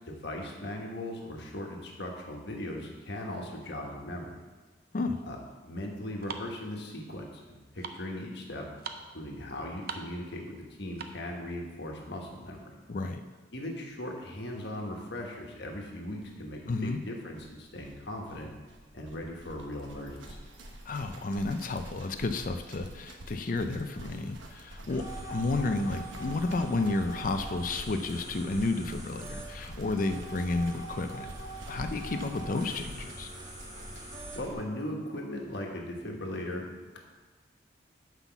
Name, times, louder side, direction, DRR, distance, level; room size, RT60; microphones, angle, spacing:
voice 1, 0.1-4.3 5.3-5.4 5.6-8.7 9.1-12.6 13.5-18.5 18.9-20.4 24.8-24.9 34.3-37.0, left 1 dB, 60° left, 1 dB, 1.4 m, -38 dB
sound 1, 5.1-11.4, right 5 dB, 55° right, 0.6 m, -44 dB
voice 2, 12.9-13.2 16.7-17.0 20.9-31.3 31.7-33.3, left 3 dB, 45° left, 7 dB, 0.5 m, -31 dB
sound 2, 16.2-16.3 16.5-16.6 16.8-34.6, right 1 dB, 80° right, 1.1 m, -48 dB
sound 3, 24.9-34.5, right 1 dB, 20° right, 1.4 m, -42 dB
6.0 x 5.7 x 7.0 m, 1.3 s
head